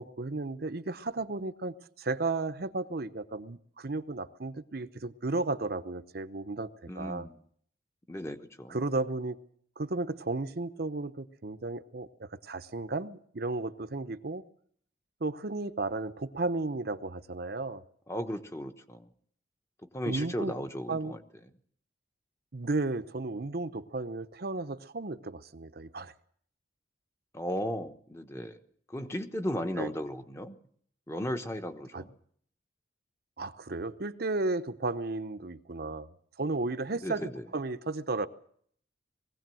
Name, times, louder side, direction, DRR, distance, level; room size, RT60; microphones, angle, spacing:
voice 1, 0.0-7.3 8.7-9.4 9.8-14.4 15.2-17.8 20.1-20.5 20.9-21.2 22.5-26.1 29.8-29.9 31.9-32.0 33.4-36.1 36.4-38.3, right 3 dB, 55° right, 10 dB, 0.8 m, -34 dB
voice 2, 6.9-7.4 8.1-8.8 18.1-19.1 19.9-21.2 27.3-28.6 28.9-30.6 31.1-32.1 37.0-37.4, equal, 15° left, 7 dB, 1.2 m, -35 dB
20.5 x 16.5 x 7.7 m, 0.62 s
head